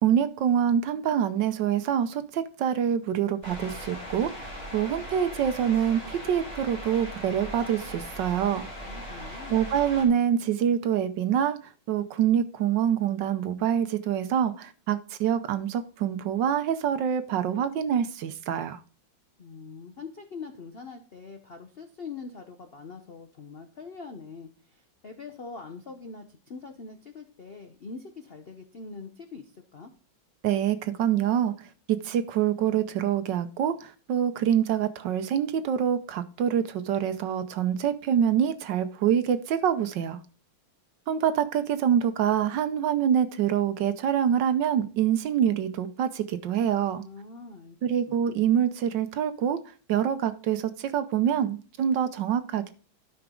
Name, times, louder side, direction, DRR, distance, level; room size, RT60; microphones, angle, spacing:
voice 1, 0.0-8.7 9.5-18.8 30.4-40.2 41.1-47.0 47.8-49.6 49.9-52.7, right 9 dB, 70° right, 1.2 m, -26 dB
sound 1, 3.4-10.1, equal, 30° left, 2.7 m, -39 dB
voice 2, 8.9-9.6 19.4-29.9 46.9-47.9, left 4 dB, 70° left, 0.5 m, -43 dB
12.0 x 6.0 x 3.7 m
omnidirectional pair, 2.3 m